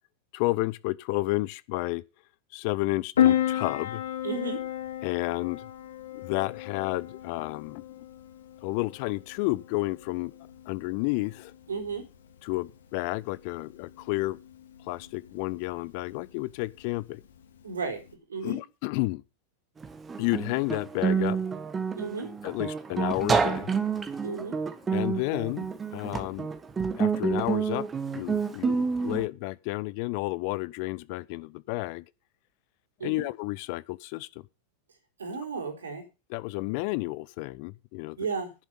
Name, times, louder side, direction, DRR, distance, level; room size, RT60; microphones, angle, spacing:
voice 1, 0.3-2.0 2.5-4.0 5.0-5.7 6.1-7.8 8.6-10.3 10.7-11.5 12.4-14.4 14.8-17.2 18.4-19.2 20.2-21.4 22.4-23.8 24.9-26.5 27.0-27.9 28.1-32.0 33.0-34.3 36.3-38.2, left 22 dB, 45° left, 0.6 m, -31 dB
Piano, 3.2-18.1, left 10 dB, 65° left, 2.1 m, -33 dB
voice 2, 4.2-4.6 11.7-12.0 17.6-18.0 18.3-18.6 22.0-22.3 24.2-24.6 33.0-33.3 35.2-36.0 38.2-38.5, right 4 dB, 70° right, 3.9 m, -33 dB
Guitar, 19.8-29.2, right 5 dB, 15° right, 1.5 m, -29 dB
11.0 x 10.5 x 5.3 m
figure-of-eight pair, 90°, 0 cm